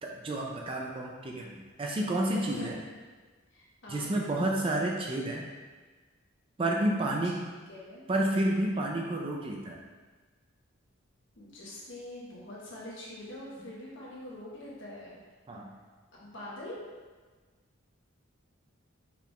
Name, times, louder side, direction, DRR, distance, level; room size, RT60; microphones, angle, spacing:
voice 1, 0.0-2.8 3.9-5.4 6.6-7.4 8.1-9.8 15.5-15.7, right 1 dB, 25° right, 0 dB, 0.3 m, -30 dB
voice 2, 2.3-2.7 3.5-4.1 7.4-8.0 11.4-15.2 16.1-16.8, left 1 dB, 65° left, -5 dB, 1.1 m, -44 dB
4.6 x 2.4 x 3.5 m, 1.4 s
head